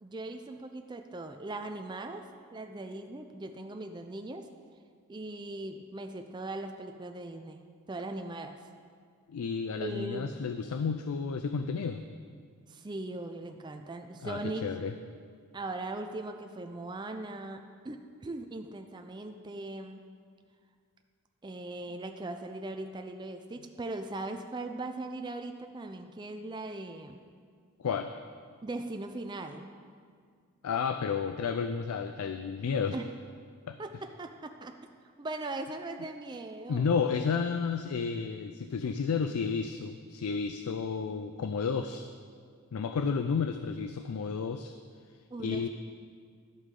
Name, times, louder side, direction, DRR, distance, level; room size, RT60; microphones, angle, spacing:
voice 1, 0.0-2.2 2.5-4.5 5.1-7.6 7.9-8.6 9.7-10.3 12.7-14.7 15.5-20.1 21.4-27.2 28.6-29.7 32.9-33.1 33.8-34.7 35.2-36.9 45.3-45.7, right 2 dB, 20° right, 5 dB, 0.4 m, -39 dB
voice 2, 9.3-12.0 14.2-14.9 27.8-28.1 30.6-33.0 33.7-33.8 36.7-42.1 42.7-44.7 45.4-45.7, left 5 dB, 90° left, 8 dB, 0.4 m, -31 dB
11.5 x 8.2 x 3.7 m, 2.1 s
head